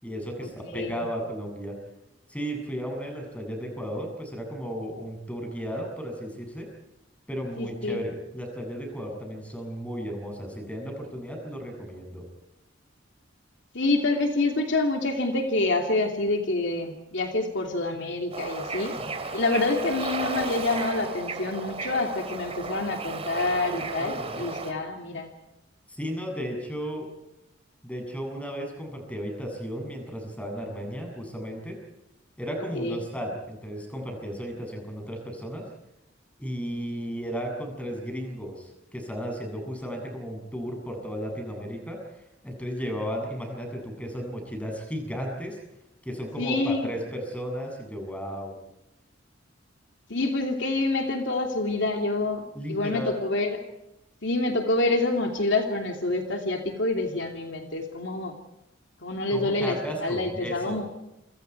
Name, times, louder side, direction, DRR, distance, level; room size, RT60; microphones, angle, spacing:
voice 1, 0.0-1.8 2.3-6.7 7.3-12.2 24.0-24.5 25.9-27.1 27.8-31.8 32.4-35.7 36.4-42.0 42.4-45.6 46.0-48.5 52.5-53.2 59.3-60.9, equal, 5° left, 2 dB, 7.6 m, -34 dB
voice 2, 0.6-1.0 7.6-8.0 13.7-18.9 19.3-25.3 32.7-33.0 46.4-46.9 50.1-52.4 52.7-53.6 54.2-58.3 59.0-60.9, left 2 dB, 65° left, 3 dB, 2.9 m, -27 dB
Bird / Ocean, 18.3-24.7, right 3 dB, 30° right, 3.3 m, -33 dB
29.0 x 26.0 x 4.8 m, 0.89 s
head